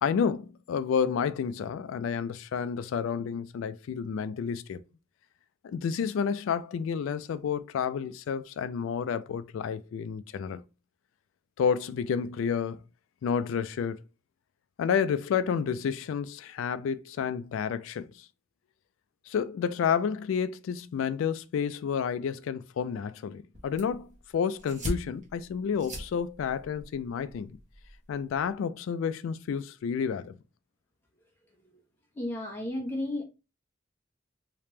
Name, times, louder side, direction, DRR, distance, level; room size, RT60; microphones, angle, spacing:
voice 1, 0.0-4.8 5.6-10.6 11.6-12.8 13.2-14.0 14.8-18.3 19.3-27.6 28.1-30.4, left 7 dB, 85° left, 0.3 m, -30 dB
sound 1, 23.5-28.5, equal, 35° right, 1.1 m, -41 dB
voice 2, 32.1-33.2, left 1 dB, 10° left, 1.0 m, -32 dB
3.3 x 2.8 x 3.1 m
head